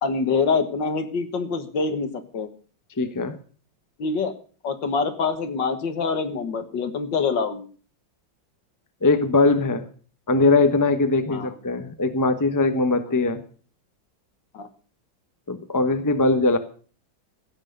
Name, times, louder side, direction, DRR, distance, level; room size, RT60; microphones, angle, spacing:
voice 1, 0.0-2.5 4.0-4.3 4.6-7.7 11.3-11.6 14.5-14.7, left 4 dB, 70° left, 8 dB, 2.1 m, -25 dB
voice 2, 3.0-3.4 9.0-9.8 10.3-13.4 15.5-16.6, left 3 dB, 15° left, 8 dB, 0.8 m, -21 dB
16.0 x 6.3 x 8.0 m, 0.43 s
omnidirectional pair, 2.1 m